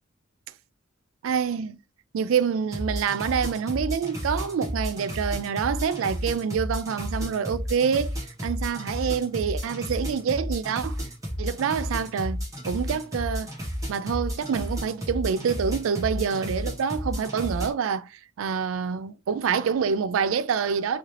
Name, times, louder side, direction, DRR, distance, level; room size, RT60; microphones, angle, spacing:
voice 1, 1.2-1.8 2.1-11.0 11.4-13.5 13.9-21.0, right 6 dB, 75° right, 0.3 m, -27 dB
sound 1, 2.7-17.7, equal, 15° right, 1.6 m, -32 dB
3.6 x 3.2 x 2.9 m
head